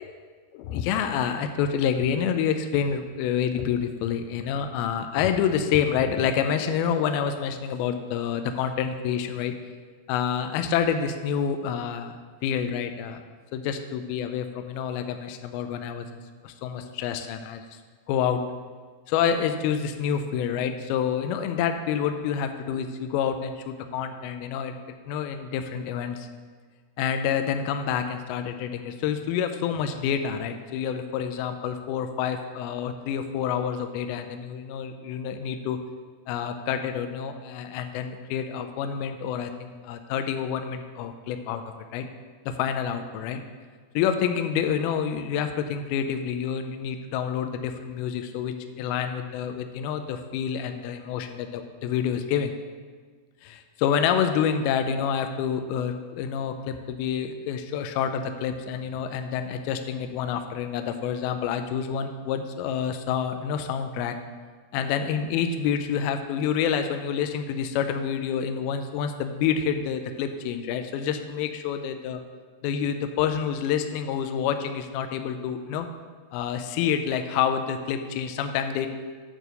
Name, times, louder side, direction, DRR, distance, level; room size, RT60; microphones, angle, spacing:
voice 1, 0.5-9.5 10.1-13.2 13.5-16.1 16.4-17.6 18.1-18.4 19.1-24.8 25.1-26.3 27.0-35.8 36.3-41.6 41.9-42.1 42.5-43.4 44.0-52.5 53.4-64.2 64.7-72.2 72.6-75.9 76.3-78.9, left 8 dB, 85° left, 7 dB, 2.2 m, -28 dB
8.8 x 4.6 x 6.7 m, 1.5 s
omnidirectional pair, 4.8 m